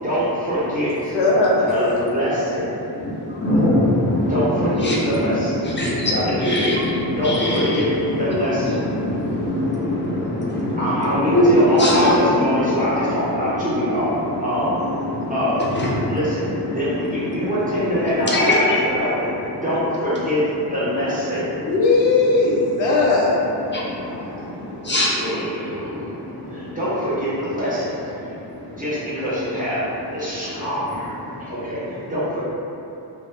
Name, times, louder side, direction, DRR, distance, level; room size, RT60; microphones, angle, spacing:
voice 1, 0.0-1.2 1.7-2.7 4.3-5.6 6.1-6.7 7.2-8.8 10.8-14.1 14.4-14.8 15.3-15.7 16.0-19.3 19.6-20.4 20.7-21.6 22.2-22.6 23.1-23.3 25.2-26.2 26.5-28.3 28.7-29.8 30.1-32.4, equal, 20° right, -11 dB, 0.7 m, -24 dB
voice 2, 1.1-1.7 21.7-23.4, left 3 dB, 90° left, -3 dB, 0.5 m, -17 dB
voice 3, 3.4-6.8 7.2-7.8 8.3-8.4 8.6-12.8 14.9-15.0 15.7-16.0 18.3-18.6 24.9-25.1, left 1 dB, 25° left, -6 dB, 0.4 m, -21 dB
2.2 x 2.0 x 3.1 m, 3.0 s
wide cardioid pair, 105°, 44 cm